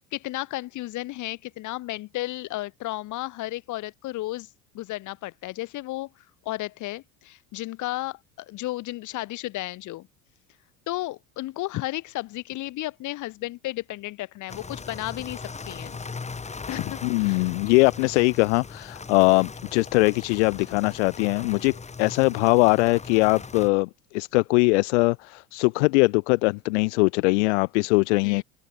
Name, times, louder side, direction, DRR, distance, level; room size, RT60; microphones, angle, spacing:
voice 1, 0.0-4.5 4.7-6.1 6.4-10.1 10.9-16.0 16.7-17.5 28.2-28.4, left 17 dB, 60° left, 3.4 m, -33 dB
sound 1, 14.5-23.7, left 4 dB, 20° left, 7.1 m, -39 dB
voice 2, 17.0-28.4, left 26 dB, 85° left, 1.0 m, -21 dB
open air
supercardioid pair, 105°, 34 cm